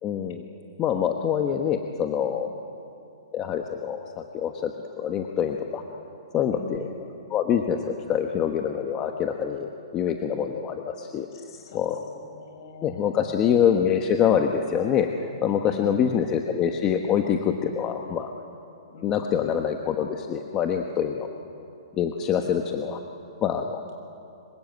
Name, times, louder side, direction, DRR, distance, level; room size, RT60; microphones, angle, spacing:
voice 1, 0.0-0.4 0.8-2.5 3.3-4.7 5.0-5.8 6.3-6.9 7.3-11.3 11.7-12.0 12.8-18.3 19.0-21.3 22.0-23.0 23.4-23.8, left 8 dB, 20° left, 4 dB, 1.2 m, -25 dB
voice 2, 6.5-6.9 11.3-13.4 15.6-16.1 18.9-19.6 22.4-22.7, left 5 dB, 50° left, 3 dB, 6.6 m, -43 dB
25.5 x 24.5 x 9.5 m, 2.6 s
hypercardioid pair, 160°, 3 cm